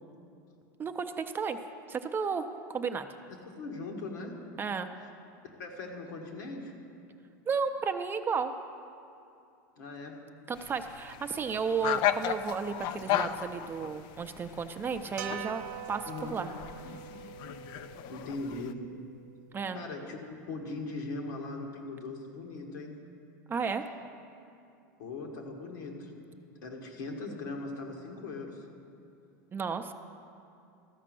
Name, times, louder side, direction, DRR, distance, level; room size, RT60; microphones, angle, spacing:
voice 1, 0.8-1.6 1.9-3.1 4.6-4.9 7.5-8.5 10.5-16.5 19.5-19.8 23.5-23.8 29.5-29.9, right 5 dB, 20° right, 8 dB, 0.5 m, -33 dB
voice 2, 3.4-4.4 5.4-6.7 9.8-10.2 16.1-16.4 18.1-18.8 19.7-22.9 25.0-26.1 26.6-28.6, left 3 dB, 85° left, 1 dB, 1.6 m, -40 dB
sound 1, 10.6-18.7, left 11 dB, 50° left, 0.4 m, -35 dB
sound 2, 15.2-19.5, right 9 dB, 75° right, 0.6 m, -44 dB
13.5 x 5.1 x 7.6 m, 2.6 s
supercardioid pair, 115°, 10 cm